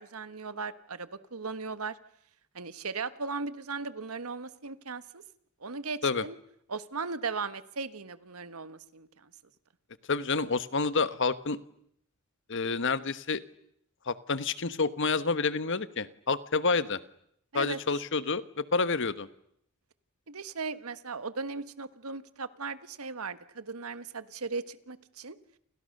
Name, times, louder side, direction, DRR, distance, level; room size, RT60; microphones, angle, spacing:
voice 1, 0.0-2.0 2.5-5.2 5.6-6.4 6.7-9.3 17.5-17.8 20.3-25.4, right 4 dB, 90° right, 13 dB, 1.5 m, -37 dB
voice 2, 10.1-11.6 12.5-13.4 14.1-17.0 17.5-19.3, left 4 dB, 60° left, 14 dB, 1.2 m, -28 dB
29.0 x 29.0 x 6.7 m, 0.71 s
head